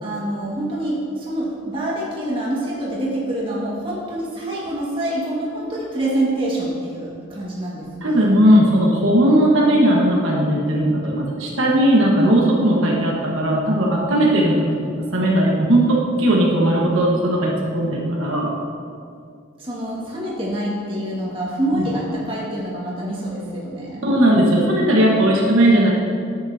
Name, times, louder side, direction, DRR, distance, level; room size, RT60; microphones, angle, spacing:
voice 1, 0.0-8.3 19.6-24.0, right 1 dB, 25° right, -6 dB, 1.8 m, -26 dB
voice 2, 8.0-18.5 21.7-21.9 24.0-25.9, right 1 dB, 85° right, -3 dB, 1.4 m, -17 dB
10.5 x 8.2 x 2.8 m, 2.4 s
head